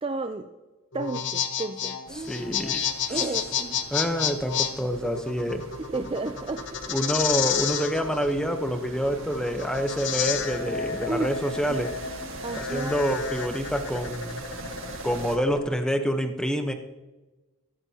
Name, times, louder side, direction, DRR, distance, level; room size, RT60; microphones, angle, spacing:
voice 1, 0.0-0.5 0.9-2.5 3.1-3.8 5.9-6.9 11.1-11.3 11.7-11.8 12.4-13.0 15.5-15.6, right 3 dB, 25° right, 7 dB, 0.4 m, -32 dB
sound 1, 0.9-15.7, left 7 dB, 50° left, 1.0 m, -31 dB
sound 2, 2.1-15.4, right 2 dB, 60° right, 1.8 m, -43 dB
voice 2, 2.2-2.8 3.1-3.2 3.9-5.6 6.9-11.9 12.5-14.4 15.0-16.7, equal, 5° left, 6 dB, 0.8 m, -27 dB
16.0 x 13.5 x 2.8 m, 1.1 s
head